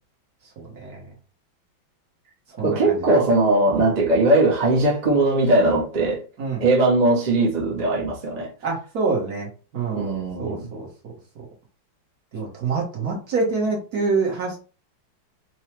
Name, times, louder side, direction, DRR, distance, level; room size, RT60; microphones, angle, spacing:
voice 1, 0.6-1.1 2.6-3.1 3.8-3.9 6.4-6.6 8.6-10.1 10.4-11.1 12.3-14.6, right 4 dB, 55° right, 1.6 m, -26 dB
voice 2, 2.6-6.2 6.6-8.5 9.9-10.7, right 2 dB, 30° right, 0.8 m, -19 dB
4.6 x 2.3 x 3.0 m
omnidirectional pair, 2.1 m